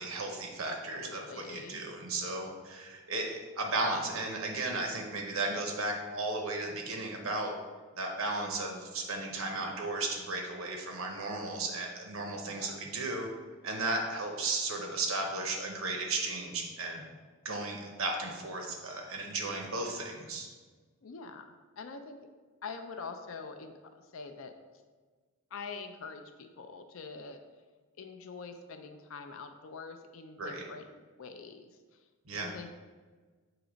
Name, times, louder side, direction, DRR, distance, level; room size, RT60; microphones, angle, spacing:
voice 1, 0.0-7.5 8.0-13.3 13.6-17.0 17.4-20.5 30.4-30.6 32.3-32.5, right 2 dB, 70° right, 2 dB, 0.9 m, -35 dB
voice 2, 0.9-1.9 12.4-12.8 21.0-21.4 21.8-22.2 22.6-23.7 24.1-24.5 25.5-27.4 28.0-30.9 31.2-31.7 32.4-32.7, left 4 dB, 65° left, 6 dB, 0.4 m, -44 dB
7.7 x 3.0 x 5.0 m, 1.4 s
head